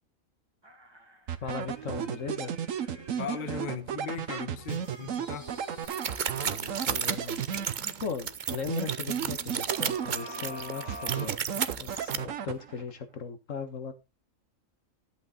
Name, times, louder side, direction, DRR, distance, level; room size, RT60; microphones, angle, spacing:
sound 1, 0.6-3.8 4.3-8.0 9.7-12.0 12.5-12.6, equal, 20° right, 2.2 m, -47 dB
sound 2, 1.3-8.1 8.5-10.5 10.9-12.9, right 9 dB, 75° right, 1.3 m, -34 dB
voice 1, 1.4-2.6 6.3-7.4 7.7-11.4 11.8-13.9, left 5 dB, 65° left, 1.8 m, -38 dB
voice 2, 3.2-5.5, left 7 dB, 40° left, 1.0 m, -38 dB
sound 3, 5.8-12.2, right 7 dB, 45° right, 0.7 m, -33 dB
11.5 x 8.2 x 4.0 m
omnidirectional pair, 1.4 m